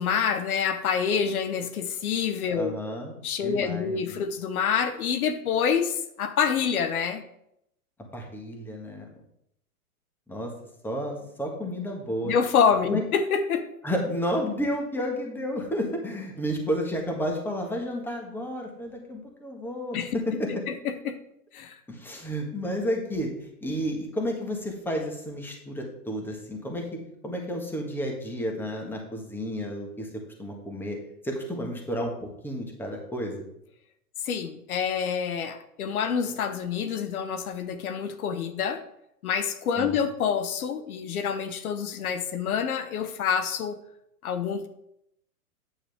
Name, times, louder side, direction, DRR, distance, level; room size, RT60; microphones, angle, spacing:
voice 1, 0.0-2.8 3.2-7.2 12.2-13.7 19.9-21.2 21.5-21.8 34.2-38.8 39.2-43.8 44.2-44.7, left 7 dB, 70° left, 10 dB, 1.0 m, -27 dB
voice 2, 2.5-3.1 3.4-4.2 8.1-9.1 10.3-10.5 10.8-12.3 12.9-13.0 13.8-20.0 20.4-20.5 21.9-26.8 27.2-30.1 30.4-31.0 31.2-33.5 39.8-40.0, equal, 5° left, 1 dB, 1.5 m, -31 dB
9.0 x 7.3 x 3.5 m, 0.78 s
hypercardioid pair, 125°, 45 cm